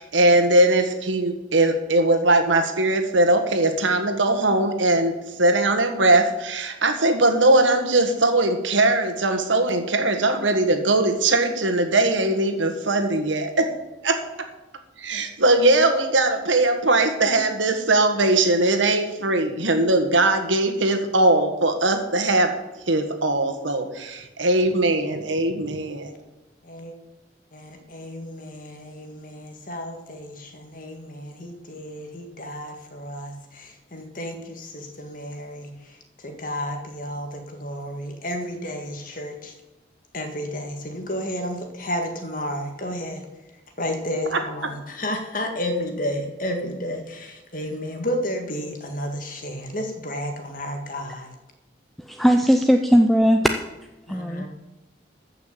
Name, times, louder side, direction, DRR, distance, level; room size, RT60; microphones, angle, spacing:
voice 1, 0.0-5.1 5.4-13.7 14.0-14.2 15.0-22.5 22.9-26.1 44.3-44.4, right 2 dB, 90° right, 7 dB, 1.6 m, -20 dB
voice 2, 26.6-26.9 27.5-39.5 40.1-43.2 43.8-51.3 54.1-54.5, equal, 45° left, 4 dB, 1.9 m, -32 dB
voice 3, 52.1-53.4 54.1-54.5, equal, ahead, 4 dB, 0.5 m, -18 dB
14.0 x 6.0 x 7.4 m, 1.0 s
head